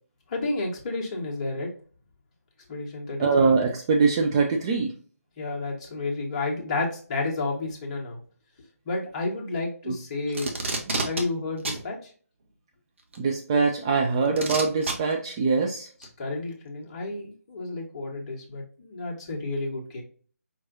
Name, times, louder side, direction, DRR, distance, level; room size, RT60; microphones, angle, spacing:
voice 1, 0.3-1.7 2.7-3.5 5.4-8.2 8.8-10.5 11.0-12.1 16.2-20.0, left 3 dB, 25° left, -2 dB, 1.3 m, -31 dB
voice 2, 3.2-4.9 9.9-10.0 13.2-15.9, right 4 dB, 20° right, 2 dB, 0.3 m, -23 dB
Packing tape duct tape, 10.3-11.2 11.6-11.8 13.1-13.2 14.4-14.9 16.0-16.1, right 3 dB, 50° right, 1.2 m, -28 dB
5.7 x 3.1 x 2.6 m, 0.42 s
figure-of-eight pair, 150°, 8 cm